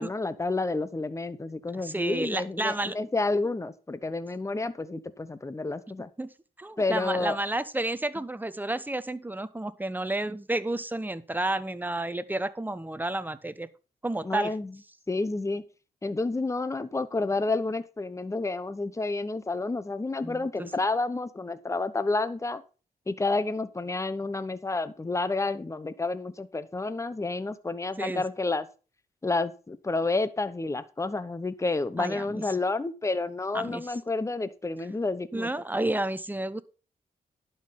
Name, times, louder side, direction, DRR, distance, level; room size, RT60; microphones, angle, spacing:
voice 1, 0.0-6.1 6.8-7.4 14.2-14.7 15.1-15.6 16.0-22.6 23.1-28.6 29.2-35.5, left 3 dB, 20° left, 0.9 m, -30 dB
voice 2, 1.7-3.0 6.0-6.3 6.6-13.7 14.0-14.5 20.2-20.7 28.0-28.2 32.0-32.4 33.5-33.8 35.3-36.6, right 2 dB, 10° right, 1.0 m, -31 dB
11.0 x 5.6 x 5.8 m
cardioid pair, 70°, 16 cm